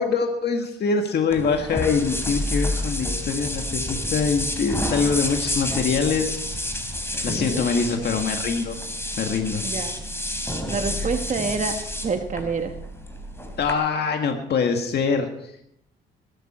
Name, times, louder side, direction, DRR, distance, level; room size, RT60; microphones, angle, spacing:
voice 1, 0.0-6.4 7.2-8.8 9.2-9.7 13.6-15.5, left 5 dB, 55° left, 4 dB, 1.9 m, -24 dB
sound 1, 1.3-13.7, left 1 dB, 10° left, 3.3 m, -29 dB
voice 2, 7.3-7.7 9.6-9.9 10.7-11.7 12.0-12.7, right 5 dB, 40° right, 6 dB, 1.5 m, -27 dB
20.5 x 12.5 x 4.4 m, 0.75 s
cardioid pair, 90°, 20 cm